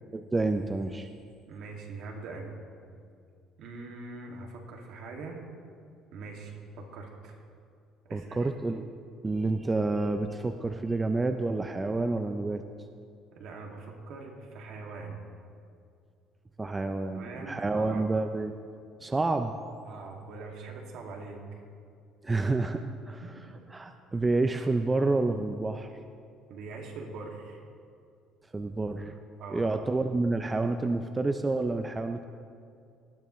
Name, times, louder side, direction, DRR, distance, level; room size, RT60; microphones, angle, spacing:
voice 1, 0.1-1.1 8.1-8.9 9.2-12.6 16.6-18.5 19.0-19.5 22.2-23.2 23.7-25.9 28.5-29.2 29.5-32.2, right 3 dB, 15° right, 7 dB, 0.5 m, -29 dB
voice 2, 1.5-2.6 3.6-5.4 6.1-7.4 8.1-8.6 13.4-15.2 17.1-18.1 19.9-21.6 23.2-23.6 26.5-27.6 29.4-29.7, right 3 dB, 65° right, 1 dB, 2.2 m, -42 dB
19.0 x 12.5 x 3.1 m, 2.3 s
cardioid pair, 130°, 0 cm